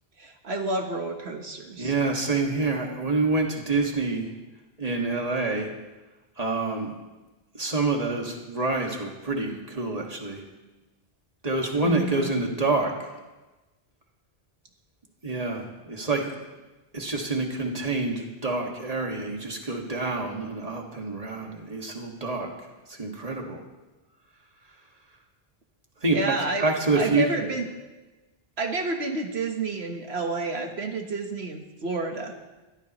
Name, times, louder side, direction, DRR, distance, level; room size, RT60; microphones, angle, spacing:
voice 1, 0.2-1.9 11.8-12.3 26.1-26.7 26.9-27.7 28.6-32.3, right 3 dB, 75° right, 3 dB, 1.6 m, -30 dB
voice 2, 1.8-4.3 4.8-5.7 6.4-6.9 7.6-10.4 11.4-12.9 15.2-16.3 16.9-22.5 23.0-23.6 26.0-26.3 26.6-27.2, right 3 dB, 35° right, 0 dB, 2.1 m, -27 dB
23.0 x 15.5 x 3.1 m, 1.1 s
omnidirectional pair, 1.1 m